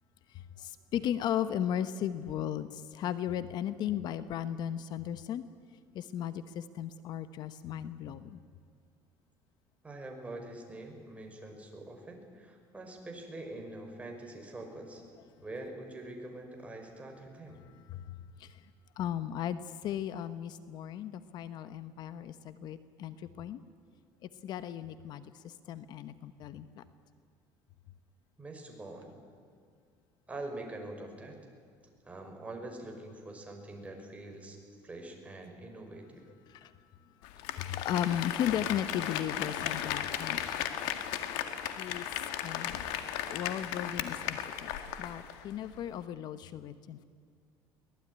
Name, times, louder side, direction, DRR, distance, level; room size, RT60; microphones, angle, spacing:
voice 1, 0.3-5.4 5.9-8.4 17.9-18.6 19.0-23.6 24.4-26.8 36.5-36.7 37.6-40.4 41.6-42.1 42.4-42.8 43.3-44.7 45.0-47.0, left 10 dB, 55° left, 12 dB, 1.0 m, -36 dB
voice 2, 9.8-15.0 15.4-17.6 28.4-29.1 30.3-31.4 32.0-34.6 34.8-36.2, right 2 dB, 15° right, 2 dB, 5.6 m, -44 dB
Applause, 37.2-45.4 45.7-45.8, left 11 dB, 90° left, 2.0 m, -36 dB
23.5 x 19.0 x 9.8 m, 2.1 s
cardioid pair, 120°, 8 cm